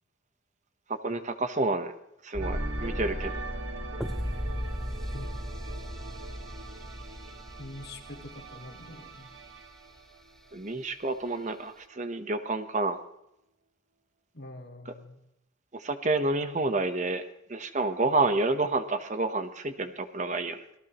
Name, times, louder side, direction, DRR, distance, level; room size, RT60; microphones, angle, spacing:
voice 1, 0.9-1.9 2.2-3.3 10.5-13.0 15.7-17.2 17.5-20.6, right 2 dB, 35° right, 9 dB, 1.0 m, -29 dB
sound 1, 2.3-9.2 9.5-9.6, equal, ahead, 0.6 m, -36 dB
sound 2, 2.4-11.1 11.3-11.6, right 3 dB, 85° right, 1.6 m, -44 dB
voice 2, 7.6-9.3 14.3-15.2, left 1 dB, 55° left, 3 dB, 2.2 m, -45 dB
25.5 x 18.5 x 3.1 m, 0.83 s
head